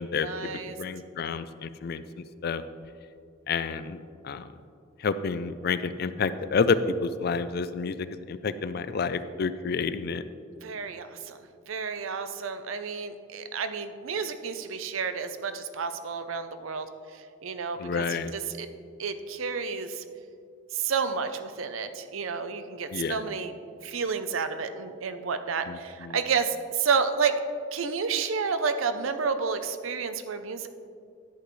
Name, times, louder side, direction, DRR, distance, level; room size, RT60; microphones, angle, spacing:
voice 1, 0.2-0.8 10.6-11.4 11.7-16.9 17.4-18.7 19.0-20.0 20.7-23.5 23.8-27.3 27.7-30.7, right 5 dB, 90° right, 9 dB, 0.6 m, -30 dB
voice 2, 0.8-2.6 3.5-4.0 4.2-4.5 5.0-8.0 8.3-10.3 17.8-18.3 22.9-23.2 25.7-26.2, left 5 dB, 50° left, 13 dB, 0.4 m, -29 dB
11.0 x 8.2 x 3.1 m, 2.3 s
head